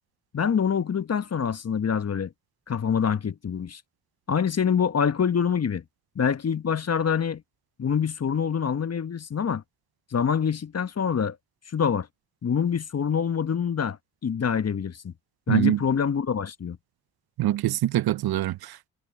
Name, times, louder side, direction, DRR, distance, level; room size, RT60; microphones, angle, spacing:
voice 1, 0.3-2.3 2.7-3.8 4.3-5.8 6.1-7.4 7.8-9.6 10.1-11.4 11.7-12.1 12.4-14.0 14.2-15.1 15.5-16.8, left 7 dB, 40° left, 1.3 m, -25 dB
voice 2, 15.5-15.8 17.4-18.9, right 14 dB, 65° right, 1.0 m, -24 dB
hypercardioid pair, 45°, 39 cm